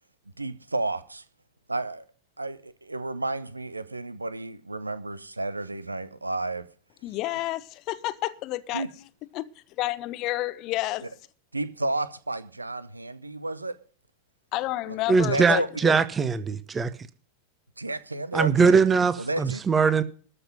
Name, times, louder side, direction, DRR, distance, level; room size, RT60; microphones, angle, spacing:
voice 1, 0.4-1.2 1.7-2.1 2.4-6.6 8.7-8.9 11.5-13.8 14.9-15.0 15.2-15.7 17.8-18.8 19.2-19.6, right 2 dB, 80° right, 0.8 m, -31 dB
voice 2, 7.0-8.8 9.3-9.5 9.8-11.1 14.5-15.9, left 17 dB, 40° left, 0.9 m, -30 dB
voice 3, 15.1-16.9 18.3-20.0, right 5 dB, 20° right, 0.9 m, -21 dB
13.5 x 6.0 x 9.1 m
figure-of-eight pair, 90°, 0 cm